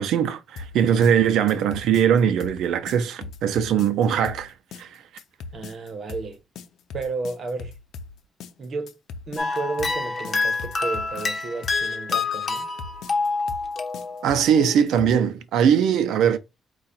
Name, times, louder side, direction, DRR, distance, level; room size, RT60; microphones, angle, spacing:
voice 1, 0.0-5.0 14.2-16.4, right 8 dB, 85° right, 0.6 m, -21 dB
sound 1, 0.6-15.3, left 4 dB, 80° left, 0.6 m, -40 dB
voice 2, 5.5-6.4 6.9-7.7 8.6-9.0 9.3-12.7, right 3 dB, 45° right, 1.1 m, -32 dB
sound 2, 9.4-14.5, left 4 dB, 40° left, 1.1 m, -27 dB
4.8 x 2.4 x 4.2 m
cardioid pair, 110°, 0 cm